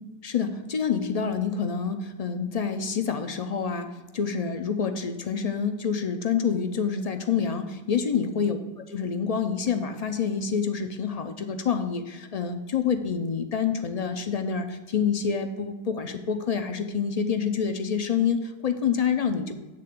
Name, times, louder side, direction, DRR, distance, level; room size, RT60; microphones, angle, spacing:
voice 1, 0.2-8.6 8.9-19.5, left 6 dB, 50° left, 8 dB, 0.5 m, -27 dB
8.6 x 3.8 x 6.6 m, 1.1 s
omnidirectional pair, 1.1 m